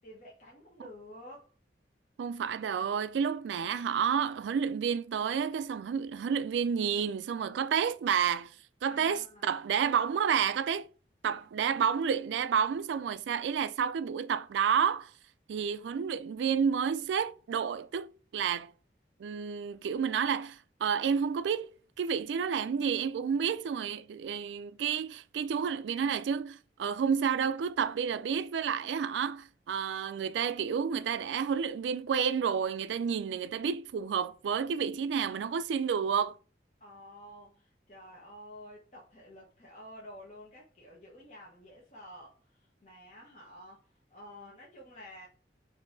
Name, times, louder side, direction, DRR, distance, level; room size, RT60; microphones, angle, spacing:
voice 1, 0.0-1.5 8.8-9.5 36.8-45.3, equal, 40° left, 0.9 m, -50 dB
voice 2, 2.2-8.5 8.8-10.9 11.2-15.1 15.5-18.7 19.2-36.4, right 7 dB, 90° right, 0.3 m, -30 dB
5.3 x 2.7 x 2.5 m
head